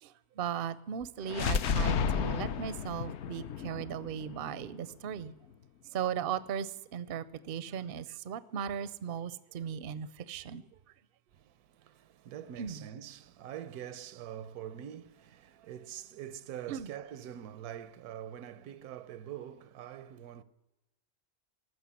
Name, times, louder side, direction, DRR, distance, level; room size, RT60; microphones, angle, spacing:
voice 1, 0.0-5.3 5.9-10.6 12.6-12.8 16.7-16.9, right 8 dB, 55° right, 0.6 m, -37 dB
sound 1, 1.3-5.1, left 6 dB, 60° left, 0.8 m, -32 dB
voice 2, 11.3-20.4, right 10 dB, 85° right, 1.2 m, -44 dB
14.5 x 6.6 x 9.8 m
omnidirectional pair, 1.6 m